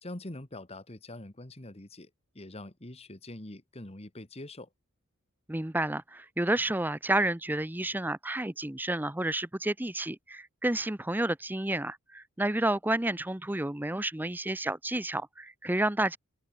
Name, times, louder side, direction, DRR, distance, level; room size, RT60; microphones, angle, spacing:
voice 1, 0.0-2.1 2.3-4.7, left 1 dB, 30° left, 1.7 m, -44 dB
voice 2, 5.5-16.2, right 1 dB, 10° right, 0.7 m, -30 dB
head